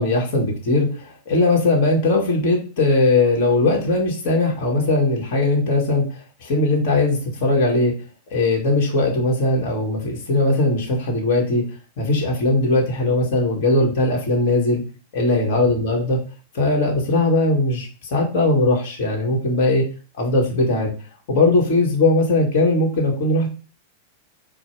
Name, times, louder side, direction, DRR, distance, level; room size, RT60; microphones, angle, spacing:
voice 1, 0.0-7.9 8.3-11.6 12.0-14.8 15.1-16.2 16.5-19.8 20.2-20.9 21.3-23.5, left 2 dB, 55° left, -1 dB, 1.2 m, -19 dB
4.5 x 2.1 x 4.4 m, 0.37 s
hypercardioid pair, 100°, 0 cm